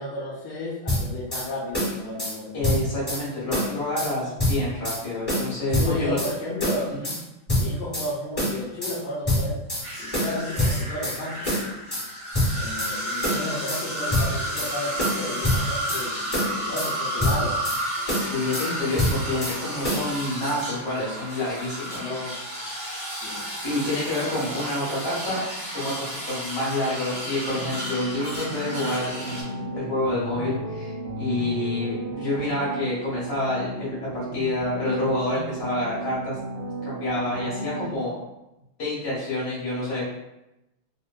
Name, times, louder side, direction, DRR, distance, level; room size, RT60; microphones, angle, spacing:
voice 1, 0.0-2.5 5.5-6.9 7.5-9.6 10.0-11.5 12.5-17.6 22.0-22.4 23.2-23.4 37.4-37.5, left 2 dB, 80° left, -5 dB, 0.9 m, -33 dB
sound 1, 0.9-1.5 1.7-2.4 2.6-3.2 3.5-4.1 4.4-5.0 5.3-6.3 6.6-7.2 7.5-8.1 8.4-9.0 9.3-9.9 10.1-11.2 11.5-12.1 12.3-12.9 13.2-13.8 14.1-14.7 15.0-16.0 16.3-16.9 17.2-17.8 18.1-18.7 19.0-19.6 19.8-20.1, left 1 dB, 20° left, 1.0 m, -25 dB
voice 2, 2.5-6.2 6.9-7.1 18.1-22.4 23.6-25.4 25.7-36.4 36.8-38.2 38.8-40.0, left 2 dB, 45° left, -8 dB, 1.7 m, -28 dB
sound 2, 9.8-29.4, right 1 dB, 45° right, 1.2 m, -32 dB
sound 3, 27.5-38.0, right 2 dB, 75° right, 1.4 m, -34 dB
3.5 x 2.1 x 2.2 m, 0.93 s
omnidirectional pair, 2.3 m